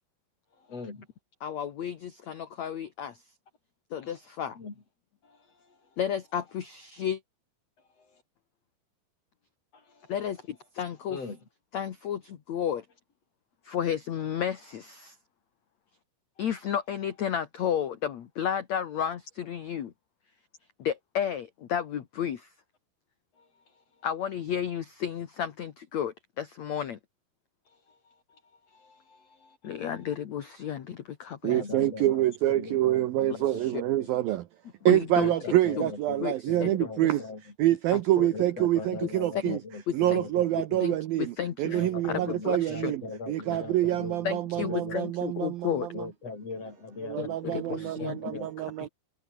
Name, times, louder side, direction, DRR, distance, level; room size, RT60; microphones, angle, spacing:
voice 1, 0.6-1.1 4.0-4.2 4.6-4.7 5.2-5.4 5.7-5.8 9.7-10.1 11.1-11.4 16.4-16.5 23.4-23.5 27.9-28.0 28.3-28.4 28.7-29.9 31.5-34.2 35.2-37.4 38.3-40.8 41.7-45.0 45.9-48.5, left 4 dB, 35° left, 5.6 m, -41 dB
voice 2, 1.4-3.2 3.9-4.6 6.0-7.2 10.1-11.2 11.7-12.9 13.6-15.2 16.4-19.9 20.8-22.5 24.0-27.0 29.6-31.6 33.7-33.8 34.8-35.3 35.8-35.9 36.2-36.7 38.2-38.3 39.4-39.6 39.9-40.2 40.8-42.9 44.2-45.9 47.2-48.2 48.8-48.9, left 9 dB, 60° left, 1.9 m, -32 dB
voice 3, 31.4-34.5 34.9-37.2 37.6-39.6 39.9-46.1 47.0-48.9, right 14 dB, 75° right, 2.2 m, -26 dB
omnidirectional pair, 5.4 m